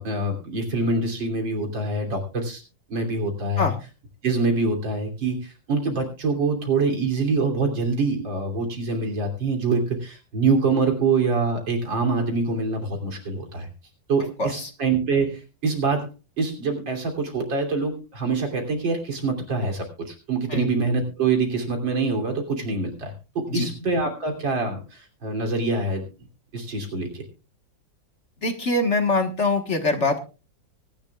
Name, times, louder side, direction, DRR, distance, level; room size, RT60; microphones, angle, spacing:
voice 1, 0.0-2.6 2.9-3.7 4.2-13.7 14.1-16.1 16.4-26.1 26.5-27.2, right 3 dB, 80° right, 2 dB, 3.8 m, -25 dB
voice 2, 14.4-14.7 20.5-20.7 23.5-23.7 28.4-30.2, left 2 dB, 40° left, 6 dB, 1.6 m, -23 dB
24.0 x 10.5 x 2.3 m, 0.32 s
omnidirectional pair, 2.0 m